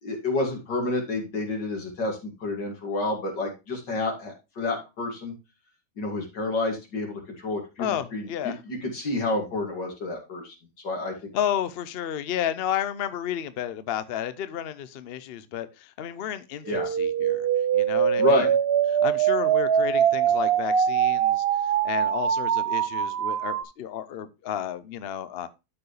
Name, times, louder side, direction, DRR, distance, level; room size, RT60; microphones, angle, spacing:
voice 1, 0.0-5.3 6.0-11.1 16.7-16.9 18.2-18.5, left 2 dB, 85° left, 3.0 m, -29 dB
voice 2, 7.8-8.6 11.3-17.5 17.7-18.5 19.0-25.5, left 10 dB, 60° left, 0.6 m, -32 dB
sound 1, 16.7-23.6, right 9 dB, 70° right, 0.5 m, -23 dB
12.5 x 4.7 x 3.2 m
omnidirectional pair, 1.8 m